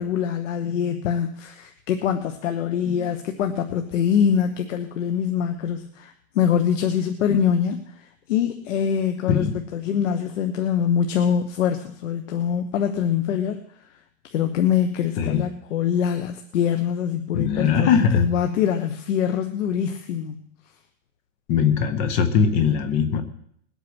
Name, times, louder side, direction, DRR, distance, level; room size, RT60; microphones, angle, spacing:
voice 1, 0.0-13.6 14.2-20.4, left 8 dB, 65° left, 6 dB, 1.3 m, -24 dB
voice 2, 17.3-18.3 21.5-23.2, left 6 dB, 15° left, 9 dB, 0.6 m, -21 dB
20.5 x 8.5 x 6.2 m, 0.67 s
supercardioid pair, 180°, 40 cm